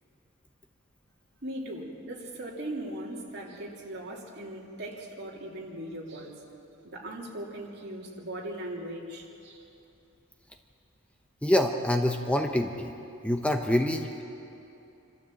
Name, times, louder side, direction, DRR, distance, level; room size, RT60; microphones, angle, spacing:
voice 1, 1.4-6.4 6.8-9.6, right 1 dB, 50° right, -3 dB, 3.2 m, -39 dB
voice 2, 11.4-12.9 13.2-14.2, left 1 dB, 5° left, 4 dB, 0.8 m, -26 dB
27.0 x 13.0 x 7.7 m, 2.8 s
head